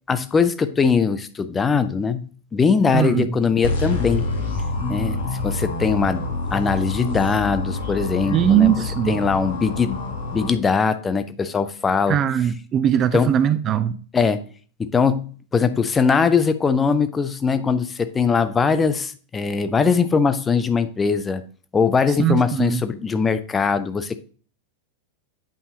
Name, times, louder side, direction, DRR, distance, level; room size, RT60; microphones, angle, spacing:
voice 1, 0.1-4.2 4.9-6.2 6.5-8.7 9.1-10.0 10.3-12.2 13.1-13.3 14.1-14.4 14.8-21.4 21.7-24.2, left 5 dB, 15° left, 11 dB, 0.6 m, -21 dB
voice 2, 2.9-3.3 4.8-5.2 7.0-7.2 8.3-9.2 12.1-14.0 22.2-22.8, right 10 dB, 30° right, 13 dB, 0.4 m, -20 dB
sound 1, 3.6-10.5, left 2 dB, 60° left, 2.0 m, -27 dB
8.8 x 5.4 x 2.8 m, 0.40 s
figure-of-eight pair, 90°, 0 cm